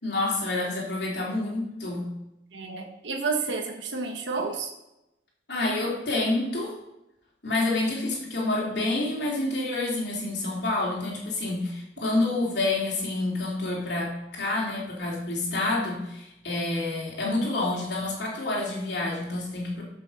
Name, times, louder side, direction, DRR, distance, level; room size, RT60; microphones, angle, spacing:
voice 1, 0.0-2.1 5.5-6.7 7.4-19.8, left 2 dB, 60° left, -3 dB, 3.4 m, -28 dB
voice 2, 2.5-4.7, right 4 dB, 75° right, 2 dB, 1.5 m, -30 dB
12.5 x 6.3 x 6.6 m, 0.92 s
head